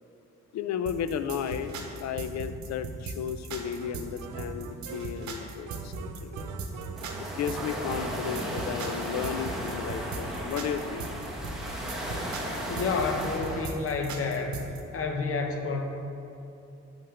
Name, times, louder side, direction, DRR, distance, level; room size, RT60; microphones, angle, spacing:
voice 1, 0.5-1.7 2.0-5.9 6.2-6.5 7.4-11.1, left 8 dB, 65° left, 11 dB, 0.4 m, -33 dB
sound 1, 0.9-14.8, right 4 dB, 70° right, 0.9 m, -38 dB
sound 2, 3.8-5.3 5.7-7.9, right 6 dB, 90° right, 0.5 m, -43 dB
sound 3, 6.9-13.7, equal, ahead, 1.1 m, -35 dB
voice 2, 12.7-14.6 14.9-15.8, left 4 dB, 50° left, 4 dB, 0.8 m, -29 dB
7.1 x 5.5 x 3.3 m, 2.8 s
cardioid pair, 90°, 30 cm